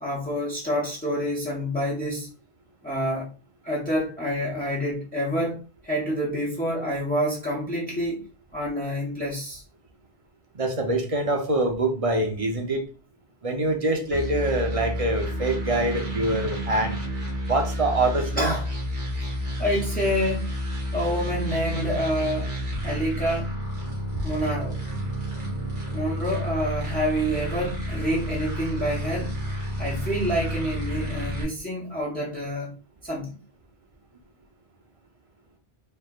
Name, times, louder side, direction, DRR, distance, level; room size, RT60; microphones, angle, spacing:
voice 1, 0.0-2.3 2.8-3.3 3.6-8.2 8.5-9.6 18.4-18.7 19.6-20.6 20.9-22.5 22.8-23.5 24.2-24.8 25.9-29.3 29.8-32.7 33.0-33.4, equal, 10° left, 1.0 m, -27 dB
voice 2, 10.5-12.8 13.4-17.0 17.5-18.6, right 2 dB, 35° right, 0.7 m, -25 dB
sound 1, 14.1-31.4, equal, 85° right, 1.8 m, -30 dB
4.4 x 3.2 x 2.4 m
omnidirectional pair, 1.1 m